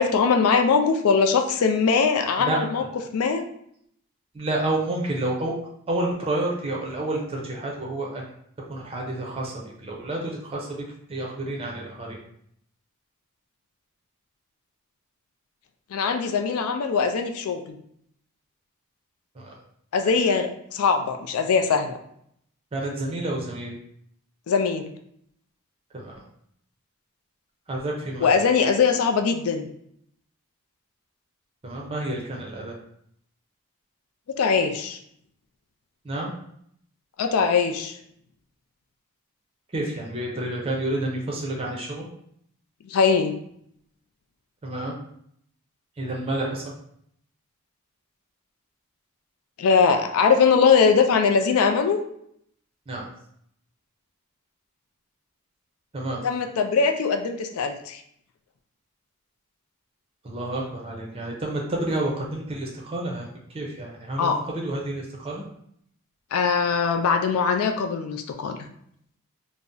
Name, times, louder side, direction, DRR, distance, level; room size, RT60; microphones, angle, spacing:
voice 1, 0.0-2.8 3.1-3.5 15.9-17.8 19.9-22.0 24.5-24.9 28.2-29.7 34.4-35.0 37.2-38.0 42.9-43.4 49.6-52.0 56.2-58.0 64.2-64.4 66.3-68.6, left 5 dB, 75° left, 6 dB, 0.3 m, -21 dB
voice 2, 2.4-2.9 4.3-5.5 5.9-8.2 8.7-10.7 11.1-12.2 19.3-19.6 22.7-23.7 25.9-26.1 27.7-28.4 31.6-32.7 36.0-36.3 39.7-42.0 44.6-44.9 46.0-46.7 52.9-53.1 55.9-56.2 60.2-65.4, right 1 dB, 25° right, -1 dB, 0.5 m, -29 dB
2.6 x 2.0 x 3.6 m, 0.69 s
head